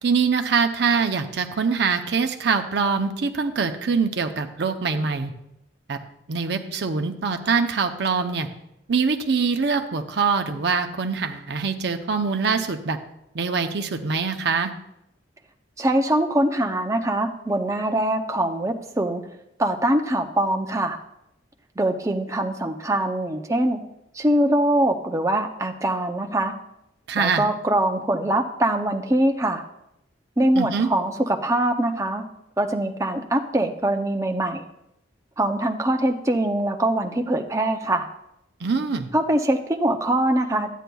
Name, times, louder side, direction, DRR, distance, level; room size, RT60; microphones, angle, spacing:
voice 1, 0.0-5.3 5.9-6.0 6.3-8.5 8.9-13.0 13.3-14.7 27.1-27.5 30.5-30.9 38.6-39.1, right 5 dB, 60° right, 6 dB, 0.6 m, -24 dB
voice 2, 15.8-19.2 19.6-21.0 21.8-23.8 24.1-26.5 27.2-29.6 30.4-32.2 32.6-34.7 35.4-38.1 39.1-40.7, right 1 dB, 15° right, 4 dB, 0.5 m, -23 dB
12.0 x 9.1 x 2.3 m, 0.85 s
head